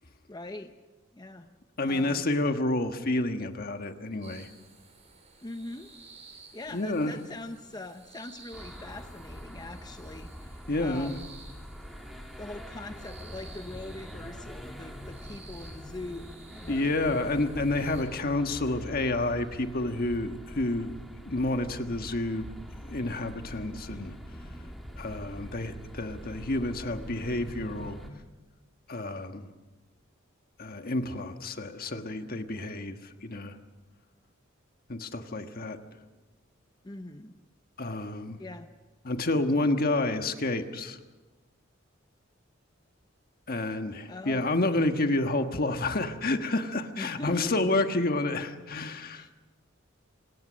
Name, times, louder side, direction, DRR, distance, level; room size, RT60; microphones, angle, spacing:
voice 1, 0.3-0.7 1.1-1.6 1.8-2.3 5.4-5.9 6.5-11.3 12.4-17.0 36.8-37.4 38.4-38.7 44.1-44.5 47.0-47.6 49.1-49.3, left 2 dB, 20° left, 7 dB, 0.8 m, -42 dB
voice 2, 1.8-4.5 6.7-7.1 10.7-11.1 16.7-20.9 21.2-22.5 22.9-24.1 25.0-28.0 28.9-29.5 30.6-33.5 34.9-35.8 37.8-38.4 39.0-41.0 43.5-49.3, left 2 dB, 50° left, 7 dB, 1.4 m, -29 dB
sound 1, 4.2-18.0, right 3 dB, 35° right, 5.3 m, -54 dB
sound 2, 8.5-28.1, equal, ahead, 2.4 m, -44 dB
26.0 x 19.0 x 6.4 m, 1.2 s
head